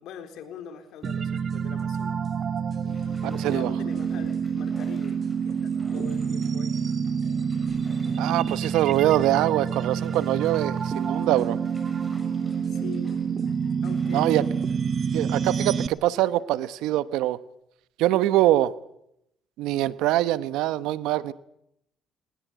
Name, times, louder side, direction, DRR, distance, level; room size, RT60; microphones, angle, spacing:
voice 1, 0.0-2.2 2.8-6.8 12.7-13.2 13.8-14.4, left 8 dB, 75° left, 7 dB, 4.0 m, -43 dB
Bathtub (filling or washing), 0.7-1.1 1.6-1.7 2.9-16.0 16.4-16.5, left 1 dB, 10° left, 6.6 m, -52 dB
sound 1, 1.0-15.9, right 6 dB, 45° right, 1.3 m, -28 dB
voice 2, 3.4-3.7 8.2-11.6 14.1-14.4 15.1-17.4 18.0-18.7 19.6-21.3, right 14 dB, 85° right, 16 dB, 1.1 m, -23 dB
21.0 x 20.0 x 9.4 m, 0.78 s
cardioid pair, 95°, 0 cm